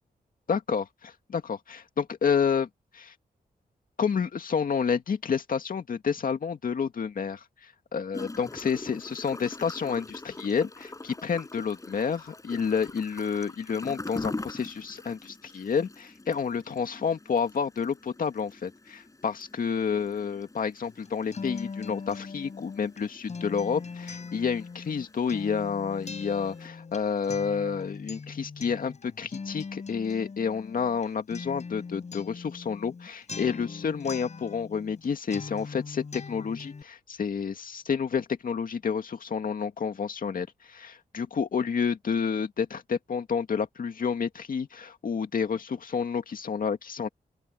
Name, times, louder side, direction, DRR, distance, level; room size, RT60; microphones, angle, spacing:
voice 1, 0.5-2.7 2.9-3.1 4.0-47.1, left 6 dB, 60° left, 2.2 m, -30 dB
Gurgling / Toilet flush, 8.1-26.7, left 2 dB, 20° left, 6.4 m, -44 dB
Acoustic guitar, 20.8-35.1 35.3-36.8, left 4 dB, 45° left, 7.2 m, -41 dB
open air
wide cardioid pair, 115°, 16 cm